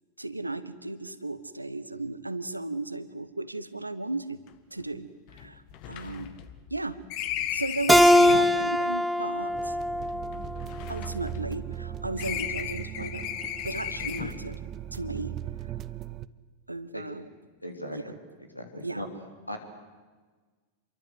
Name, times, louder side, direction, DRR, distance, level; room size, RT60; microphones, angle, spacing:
voice 1, 0.2-4.4 4.7-5.6 5.9-6.3 6.7-7.0 7.5-9.8 10.9-13.3 13.6-14.6 14.9-15.3 15.6-15.8 16.7-17.3 17.9-18.1 18.8-19.0, right 2 dB, 85° right, 14 dB, 1.3 m, -35 dB
sound 1, 4.5-4.6 4.8-4.9 5.3-8.6 9.4-11.8 12.2-14.5, left 11 dB, 45° left, 1.8 m, -36 dB
Keyboard (musical), 7.9-11.1, left 1 dB, ahead, 0.9 m, -22 dB
sound 2, 9.5-16.3, right 12 dB, 30° right, 0.8 m, -38 dB
voice 2, 17.6-18.2 18.5-19.1 19.5-19.6, equal, 90° left, 4 dB, 3.7 m, -37 dB
27.5 x 23.0 x 8.0 m, 1.4 s
figure-of-eight pair, 90°, 0 cm